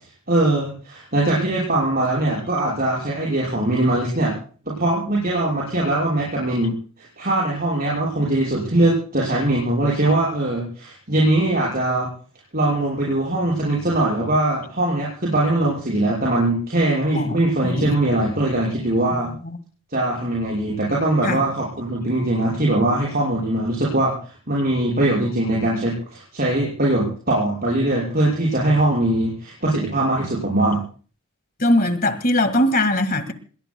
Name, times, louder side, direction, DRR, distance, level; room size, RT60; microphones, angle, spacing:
voice 1, 0.3-4.4 4.7-12.1 12.5-19.3 19.9-30.8, right 1 dB, 45° right, 6.1 m, -21 dB
voice 2, 17.6-18.0 19.4-19.6 21.2-21.4 31.6-33.3, left 1 dB, 40° left, 1.9 m, -20 dB
27.0 x 21.5 x 2.3 m
head